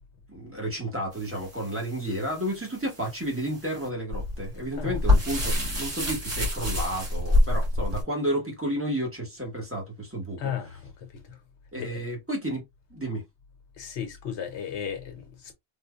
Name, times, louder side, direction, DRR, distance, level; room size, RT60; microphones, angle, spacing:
voice 1, 0.3-10.4 11.7-12.6 12.9-13.2, right 1 dB, 10° right, 1.3 m, -31 dB
sound 1, 1.1-8.0, left 2 dB, 50° right, 2.2 m, -27 dB
voice 2, 10.4-11.4 11.8-12.0 13.8-15.5, left 8 dB, 80° left, 1.0 m, -35 dB
3.7 x 2.6 x 2.3 m
omnidirectional pair, 1.1 m